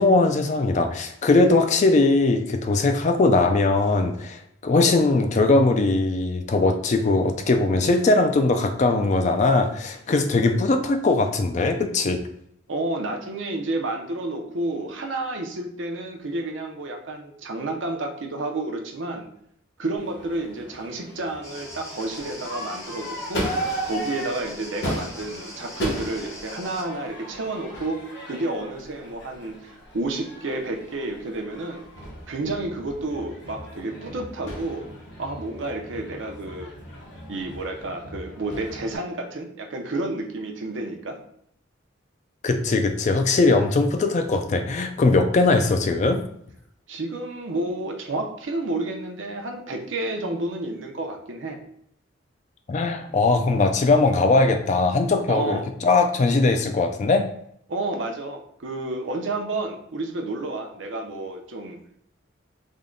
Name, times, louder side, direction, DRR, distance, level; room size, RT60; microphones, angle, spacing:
voice 1, 0.0-12.2 42.4-46.2 52.7-57.3, left 3 dB, 40° left, 7 dB, 0.3 m, -20 dB
voice 2, 12.7-19.3 19.8-23.4 23.8-31.8 32.3-34.9 35.2-36.7 37.3-41.2 46.9-51.6 55.3-55.7 57.7-61.8, right 2 dB, 85° right, 3 dB, 0.6 m, -30 dB
Crowd / Fireworks, 20.0-39.0, equal, 65° left, 1.1 m, -36 dB
sound 1, 21.4-26.8, left 1 dB, 15° left, 0.7 m, -42 dB
3.5 x 2.2 x 3.7 m, 0.70 s
head